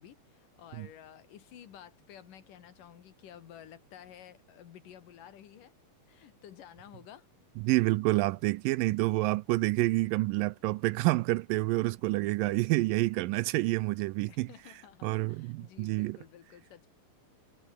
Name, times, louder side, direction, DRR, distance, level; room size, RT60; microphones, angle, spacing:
voice 1, 0.0-5.7 6.1-7.3 14.3-16.9, left 10 dB, 65° left, 3.2 m, -52 dB
voice 2, 7.6-14.5 15.0-16.2, right 20 dB, 80° right, 2.1 m, -28 dB
omnidirectional pair, 4.2 m